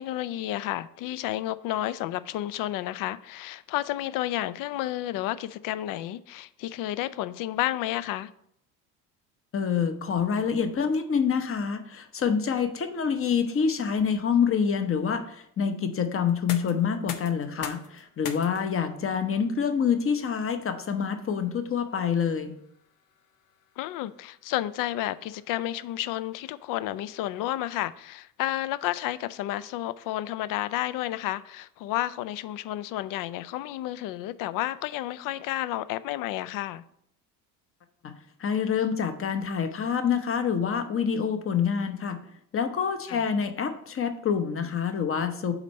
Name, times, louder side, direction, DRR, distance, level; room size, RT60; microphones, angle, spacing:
voice 1, 0.0-8.3 23.8-36.8 43.1-43.2, left 14 dB, 45° left, 0.4 m, -31 dB
voice 2, 9.5-22.5 38.0-38.1 38.4-42.2 42.5-45.5, left 7 dB, 25° left, 0.8 m, -27 dB
sound 1, 16.3-28.0, left 8 dB, 75° left, 0.8 m, -47 dB
5.0 x 4.2 x 5.4 m
hypercardioid pair, 65°, 48 cm